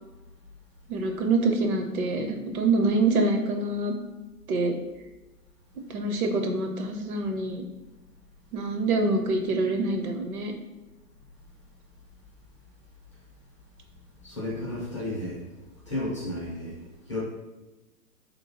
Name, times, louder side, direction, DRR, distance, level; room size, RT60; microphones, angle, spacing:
voice 1, 0.9-3.9 4.5-4.7 5.9-7.6 8.5-10.5, right 3 dB, 60° right, 4 dB, 0.7 m, -25 dB
voice 2, 14.2-15.4 15.9-17.2, left 1 dB, 20° left, -7 dB, 0.4 m, -33 dB
3.2 x 2.9 x 2.8 m, 1.1 s
hypercardioid pair, 130°, 48 cm